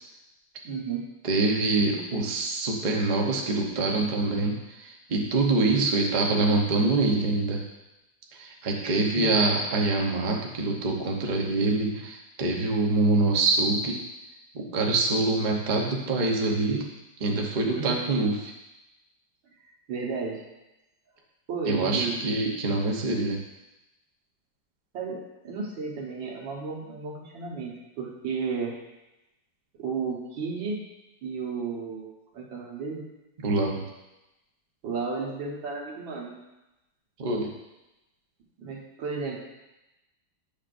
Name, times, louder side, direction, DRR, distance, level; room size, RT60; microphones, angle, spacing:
voice 1, 0.6-1.1 8.8-9.3 17.7-18.0 19.9-20.4 21.5-22.2 24.9-28.8 29.7-30.9 31.2-33.0 34.8-36.4 38.6-39.5, right 5 dB, 90° right, -1 dB, 2.0 m, -33 dB
voice 2, 1.2-7.6 8.3-14.0 14.5-16.8 17.2-18.5 21.7-23.4 33.4-33.8 37.2-37.5, right 2 dB, 45° right, 0 dB, 0.6 m, -25 dB
8.5 x 6.5 x 2.5 m, 0.97 s
omnidirectional pair, 2.1 m